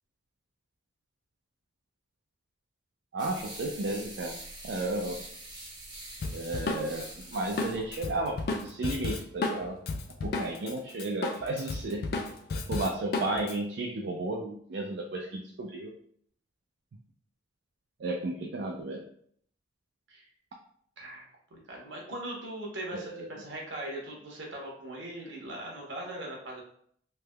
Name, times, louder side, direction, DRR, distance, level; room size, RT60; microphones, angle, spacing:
voice 1, 3.1-4.4 4.6-5.2 6.3-9.8 10.2-12.0 12.7-15.9 18.0-19.0 22.9-23.3, right 2 dB, 70° right, 0 dB, 0.4 m, -33 dB
sound 1, 3.2-8.6, right 2 dB, 25° right, 0.7 m, -45 dB
Drum kit, 6.2-10.7 11.0-13.5, left 3 dB, 55° left, 0.4 m, -33 dB
voice 2, 21.0-26.6, right 1 dB, 85° right, -2 dB, 1.0 m, -40 dB
3.3 x 3.0 x 2.2 m, 0.63 s
head